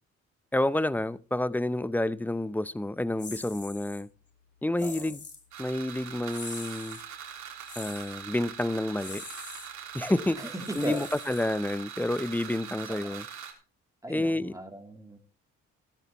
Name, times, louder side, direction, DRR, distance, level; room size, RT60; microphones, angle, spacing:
voice 1, 0.5-4.1 4.6-5.2 5.6-7.0 7.8-9.2 9.9-13.2 14.1-14.6, left 1 dB, 5° left, 0.6 m, -29 dB
sound 1, 3.2-4.0 4.8-5.4 6.3-7.1 7.6-8.1 9.0-9.7 10.6-11.7, left 4 dB, 35° left, 3.4 m, -44 dB
voice 2, 4.8-5.1 10.4-11.3 12.9-13.2 14.0-15.2, right 1 dB, 10° right, 2.9 m, -38 dB
sound 2, 5.5-13.5, right 8 dB, 70° right, 3.7 m, -42 dB
16.5 x 13.0 x 3.0 m
cardioid pair, 90°, 30 cm